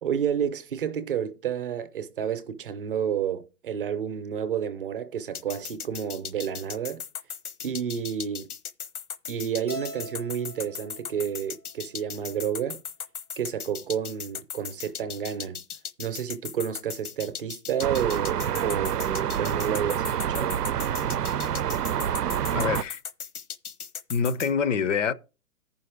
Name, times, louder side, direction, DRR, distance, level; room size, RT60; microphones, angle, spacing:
voice 1, 0.0-7.0 7.6-8.5 9.3-12.8 13.4-15.6 16.0-20.6, right 8 dB, 35° right, 0.7 m, -30 dB
sound 1, 5.3-24.5, left 8 dB, 70° left, 1.1 m, -37 dB
Keyboard (musical), 9.7-12.0, right 1 dB, 10° left, 0.5 m, -42 dB
sound 2, 17.8-22.8, right 9 dB, 90° right, 0.6 m, -27 dB
voice 2, 22.5-23.0 24.1-25.1, left 6 dB, 55° left, 0.6 m, -25 dB
14.5 x 5.4 x 3.4 m
hypercardioid pair, 155°, 46 cm